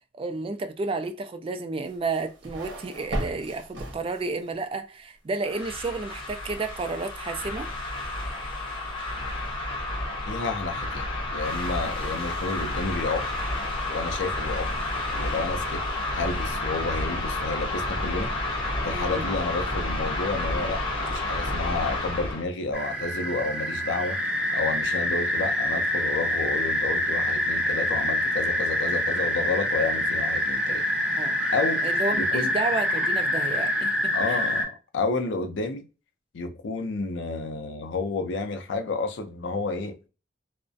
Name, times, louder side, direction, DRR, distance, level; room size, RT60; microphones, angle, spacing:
voice 1, 0.1-7.7 18.9-19.4 31.2-31.4 31.8-34.4, right 3 dB, 30° right, 0.3 m, -31 dB
sound 1, 1.9-4.5, right 1 dB, 65° right, 0.8 m, -36 dB
sound 2, 5.4-22.4, left 2 dB, 30° left, 0.8 m, -30 dB
voice 2, 10.3-11.0 11.3-13.3 13.9-14.7 15.1-15.8 16.1-18.3 18.8-24.2 24.5-30.8 31.5-31.8 32.1-32.5 34.1-35.9 36.3-40.1, left 3 dB, 65° left, 0.4 m, -30 dB
sound 3, 22.7-34.6, left 1 dB, 5° right, 0.8 m, -26 dB
2.4 x 2.0 x 2.5 m
head